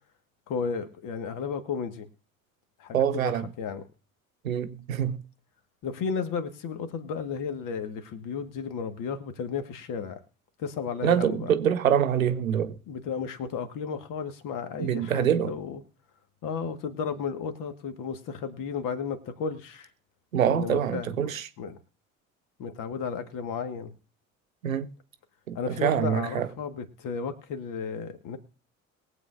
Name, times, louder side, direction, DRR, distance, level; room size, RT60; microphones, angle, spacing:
voice 1, 0.5-2.1 2.8-3.8 5.8-10.2 10.6-11.4 12.9-15.8 16.4-19.9 20.4-21.3 21.6-21.8 22.6-23.9 25.5-28.4, left 6 dB, 50° left, 1.7 m, -33 dB
voice 2, 2.9-3.5 4.4-5.2 11.0-12.7 14.8-15.5 20.3-21.5 24.6-24.9 25.5-26.5, right 9 dB, 80° right, 0.8 m, -25 dB
22.0 x 8.2 x 2.6 m
figure-of-eight pair, 55°, 40 cm